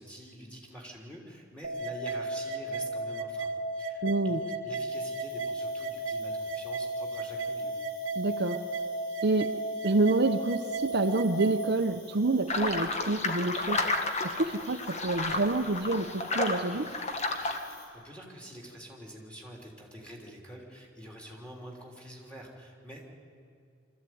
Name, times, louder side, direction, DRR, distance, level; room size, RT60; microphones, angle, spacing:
voice 1, 0.0-3.5 3.8-7.7 17.7-23.1, equal, 5° left, -1 dB, 3.6 m, -46 dB
sound 1, 1.6-11.6, right 2 dB, 90° right, 1.0 m, -34 dB
voice 2, 4.0-4.4 8.2-8.6 9.2-9.6 9.8-13.9 14.2-17.0, right 2 dB, 55° right, 6 dB, 0.8 m, -28 dB
Cricket, 4.9-17.9, left 2 dB, 75° left, 6.0 m, -55 dB
sound 2, 12.5-17.6, left 2 dB, 35° left, 1.6 m, -32 dB
24.5 x 14.0 x 9.4 m, 2.3 s
head